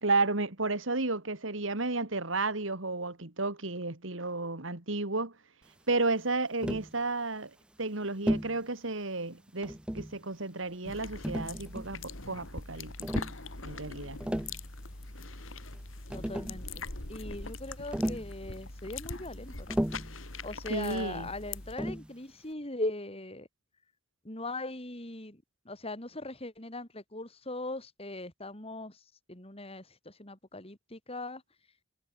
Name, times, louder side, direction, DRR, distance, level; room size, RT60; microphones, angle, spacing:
voice 1, 0.0-5.3 5.9-7.5 7.8-13.2 13.6-14.2 20.7-21.3, right 3 dB, 70° right, 2.6 m, -32 dB
Tap, 6.6-6.9 8.3-8.6 9.6-10.2 11.2-12.0 13.0-13.4 14.1-14.6 15.7-15.8 16.1-16.6 17.9-18.3 19.7-20.2 21.8-22.1, equal, 5° right, 0.5 m, -33 dB
sound 1, 10.8-21.8, left 3 dB, 85° left, 4.1 m, -42 dB
voice 2, 16.1-19.8 20.4-23.5 24.2-31.4, left 2 dB, 30° left, 4.8 m, -40 dB
head